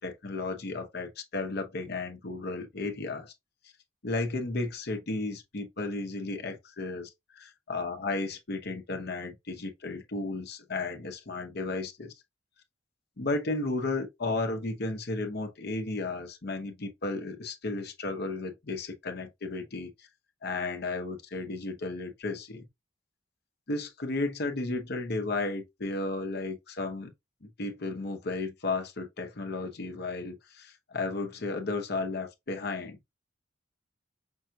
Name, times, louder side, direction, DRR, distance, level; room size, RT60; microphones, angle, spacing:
voice 1, 0.0-3.3 4.0-12.1 13.2-19.9 20.4-22.7 23.7-27.1 27.4-33.0, left 3 dB, 60° left, 0.8 m, -34 dB
5.4 x 2.3 x 2.7 m
head